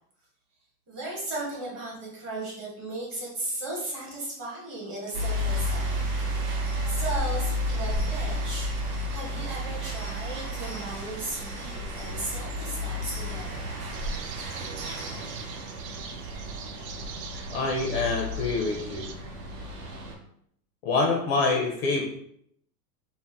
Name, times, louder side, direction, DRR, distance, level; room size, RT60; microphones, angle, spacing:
voice 1, 0.9-6.0 6.9-8.7 9.1-13.7, right 2 dB, 25° right, -4 dB, 1.0 m, -36 dB
sound 1, 5.1-20.1, equal, 65° right, 0.9 m, -32 dB
sound 2, 13.9-19.1, right 6 dB, 90° right, 0.6 m, -43 dB
voice 2, 17.5-19.1 20.8-22.1, left 3 dB, 40° left, 0 dB, 0.4 m, -26 dB
2.7 x 2.1 x 3.4 m, 0.70 s
supercardioid pair, 150°, 48 cm